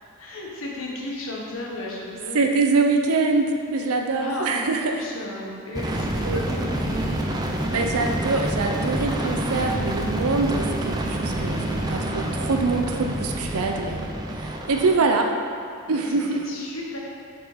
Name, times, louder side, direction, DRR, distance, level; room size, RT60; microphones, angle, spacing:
voice 1, 0.2-2.4 4.2-7.2 11.3-11.7 15.9-17.0, left 1 dB, 70° left, -3 dB, 1.3 m, -34 dB
voice 2, 2.3-5.0 6.3-6.4 7.7-14.1 14.4-15.3 15.9-16.4, right 3 dB, 90° right, 3 dB, 0.6 m, -24 dB
sound 1, 5.8-14.9, right 1 dB, 20° right, 0.5 m, -27 dB
7.3 x 5.2 x 5.1 m, 2.3 s
head